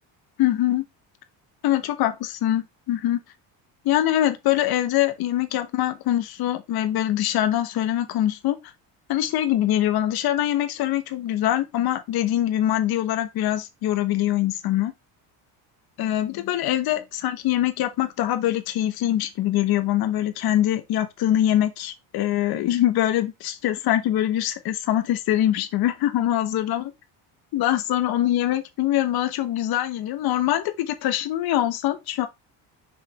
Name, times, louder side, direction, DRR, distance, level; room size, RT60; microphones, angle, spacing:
voice 1, 0.4-0.8 1.6-3.2 3.8-8.6 9.1-14.9 16.0-26.9 27.5-32.3, left 12 dB, 55° left, 1.1 m, -23 dB
6.8 x 4.9 x 3.3 m
cardioid pair, 155°, 43 cm